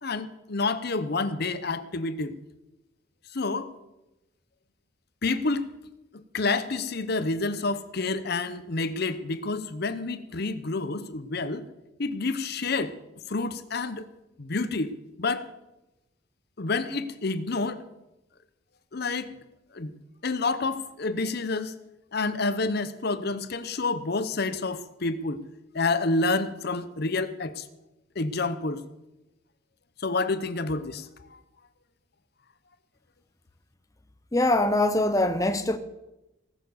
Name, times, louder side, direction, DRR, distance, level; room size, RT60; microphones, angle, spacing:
voice 1, 0.0-2.3 3.3-3.7 5.2-5.7 6.1-11.6 12.0-12.9 13.3-14.1 14.4-14.9 15.2-15.5 16.6-17.8 18.9-19.3 19.7-19.9 20.2-21.8 22.1-25.4 25.7-27.7 28.2-28.8 30.0-31.4, left 3 dB, 50° left, 0.8 m, -28 dB
voice 2, 34.3-35.8, left 1 dB, 15° left, 0.6 m, -23 dB
18.0 x 6.8 x 7.0 m
head